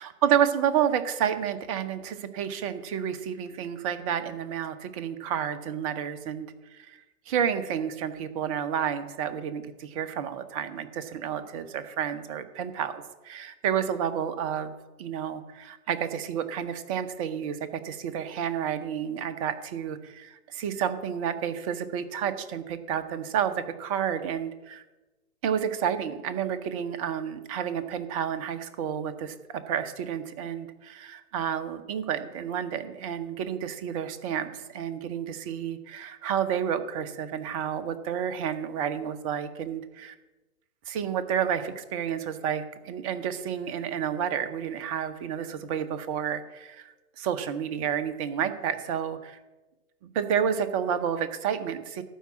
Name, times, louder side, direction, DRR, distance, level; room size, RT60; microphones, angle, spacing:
voice 1, 0.0-24.8 25.4-40.1 40.9-49.4 50.0-52.0, right 8 dB, 25° right, 10 dB, 0.6 m, -30 dB
12.5 x 4.7 x 8.4 m, 1.1 s
figure-of-eight pair, 115°, 46 cm